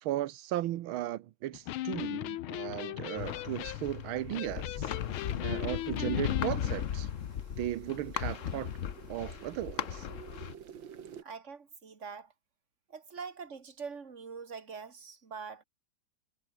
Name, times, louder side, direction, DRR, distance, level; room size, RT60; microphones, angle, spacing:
voice 1, 0.0-4.9 5.4-7.1 7.6-8.7 9.1-10.1, right 14 dB, 90° right, 1.6 m, -36 dB
Electric guitar, 1.5-6.5, left 15 dB, 85° left, 1.5 m, -38 dB
sound 1, 3.2-10.5, left 9 dB, 50° left, 1.0 m, -36 dB
sound 2, 4.3-11.2, right 8 dB, 70° right, 2.3 m, -53 dB
voice 2, 11.2-12.3 12.9-15.6, right 5 dB, 35° right, 2.5 m, -44 dB
omnidirectional pair, 2.2 m